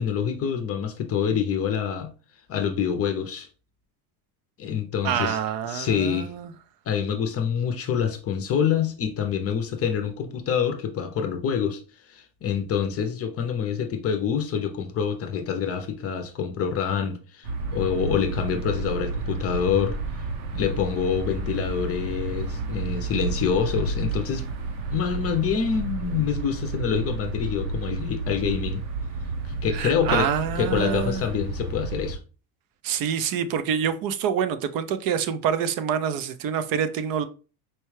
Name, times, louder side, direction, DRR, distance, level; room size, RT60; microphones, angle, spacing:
voice 1, 0.0-2.1 2.5-3.5 4.6-5.4 5.7-6.3 6.9-11.8 12.1-20.0 20.5-24.5 24.9-28.8 29.4-30.3 30.6-32.2, left 7 dB, 35° left, 0.6 m, -26 dB
voice 2, 5.0-6.5 29.7-31.2 32.8-37.3, right 8 dB, 50° right, 0.5 m, -26 dB
sound 1, 17.4-32.2, right 3 dB, 75° right, 0.9 m, -31 dB
4.4 x 2.2 x 3.2 m
supercardioid pair, 125°, 45 cm